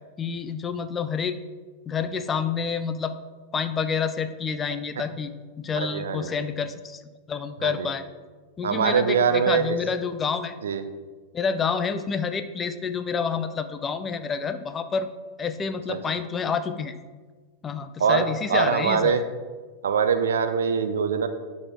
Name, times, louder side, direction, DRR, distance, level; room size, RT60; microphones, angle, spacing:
voice 1, 0.2-1.4 1.9-3.1 3.5-7.0 7.3-8.1 8.6-9.2 9.5-10.6 11.3-15.1 15.4-17.0 17.6-19.2, left 6 dB, 20° left, 10 dB, 0.5 m, -28 dB
voice 2, 5.8-6.4 7.6-7.9 8.6-9.7 10.6-10.8 15.9-16.0 18.0-19.2 19.8-21.3, right 6 dB, 65° right, 10 dB, 0.5 m, -23 dB
11.5 x 4.2 x 3.6 m, 1.4 s
figure-of-eight pair, 90°, 0 cm